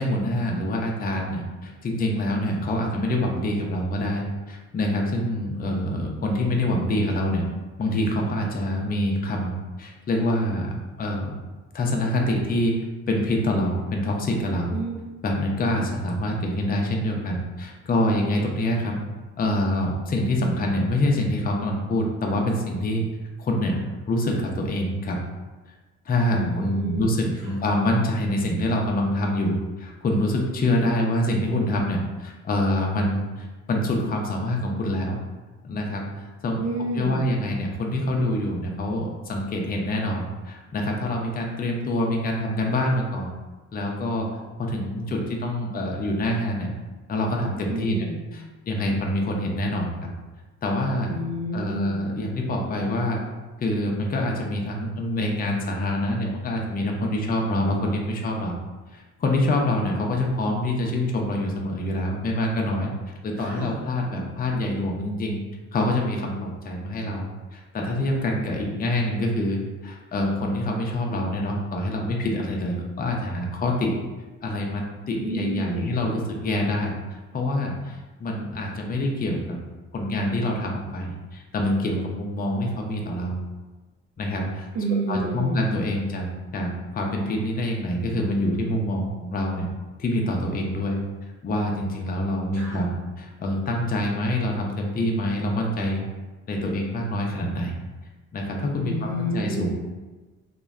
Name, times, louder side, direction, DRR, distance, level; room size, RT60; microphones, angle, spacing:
voice 1, 0.0-7.4 7.8-11.4 11.7-12.8 13.1-14.7 15.2-19.0 19.4-23.0 23.4-25.2 26.1-35.2 35.6-36.6 36.9-43.3 43.7-46.7 47.1-48.0 48.3-50.1 50.6-51.2 51.5-53.2 53.6-58.6 58.9-62.9 63.2-65.4 65.7-73.9 74.4-79.6 79.9-83.4 84.2-84.7 85.1-89.7 90.0-91.0 91.4-96.0 96.5-97.7 98.3-99.7, left 1 dB, 30° left, 0 dB, 0.5 m, -26 dB
voice 2, 26.3-27.3 36.6-37.3 47.7-48.2 51.1-52.0 63.4-63.8 75.2-76.0 84.7-85.7 92.5-92.9 98.8-99.7, right 2 dB, 60° right, -6 dB, 0.6 m, -30 dB
3.0 x 2.1 x 2.3 m, 1.2 s
cardioid pair, 90°, 30 cm